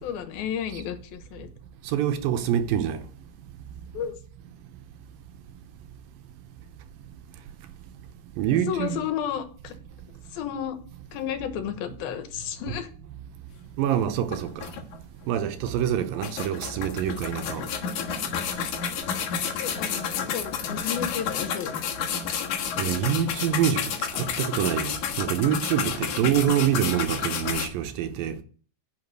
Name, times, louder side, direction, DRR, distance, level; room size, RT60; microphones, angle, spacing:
voice 1, 0.0-1.5 3.9-4.1 8.5-9.7 10.3-10.8 11.1-12.9 19.6-21.8, left 9 dB, 75° left, 3.0 m, -32 dB
voice 2, 1.9-3.0 8.4-9.0 13.8-14.7 15.3-17.6 22.8-28.4, right 10 dB, 75° right, 2.5 m, -26 dB
sound 1, 13.9-14.0 14.3-15.2 15.7-15.8 16.2-27.7, left 7 dB, 60° left, 2.5 m, -30 dB
11.0 x 6.2 x 7.7 m
omnidirectional pair, 4.3 m